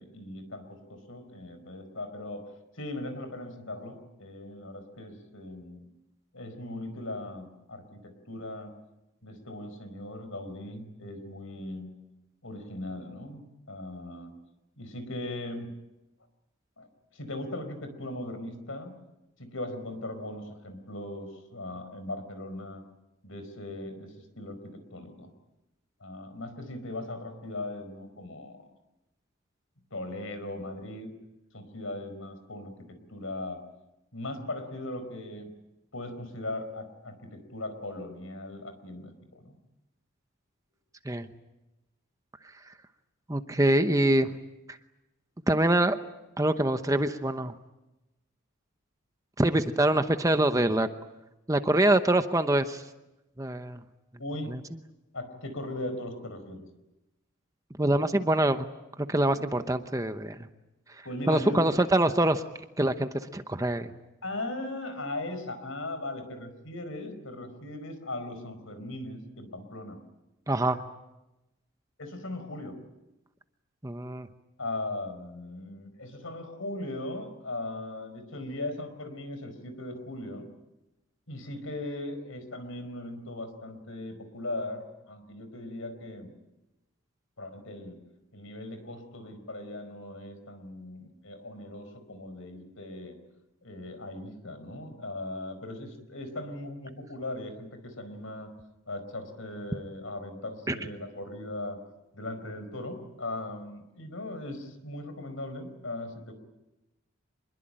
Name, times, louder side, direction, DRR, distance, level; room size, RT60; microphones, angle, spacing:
voice 1, 0.0-2.5 2.7-5.8 6.3-8.7 9.2-11.9 12.4-13.4 13.7-14.4 14.8-15.7 16.8-16.9 17.1-18.9 19.4-22.8 23.2-25.3 26.0-28.7 29.9-31.1 31.5-33.6 34.1-35.5 35.9-39.5 54.2-54.5 55.1-56.6 61.0-61.9 64.2-70.0 72.0-72.8 74.6-80.5 81.3-86.3 87.4-88.0 88.3-93.2 93.6-98.5 98.9-101.8 102.1-106.3, left 1 dB, 70° left, 9 dB, 4.8 m, -38 dB
voice 2, 43.3-44.3 45.5-46.0 46.4-47.5 49.4-50.9 51.5-52.8 53.4-53.8 54.5-54.6 57.8-58.6 59.1-60.4 61.3-62.4 62.8-63.9 70.5-70.8 73.8-74.3 100.7-100.8, right 1 dB, 15° right, 9 dB, 0.9 m, -24 dB
26.0 x 22.0 x 8.9 m, 0.97 s
head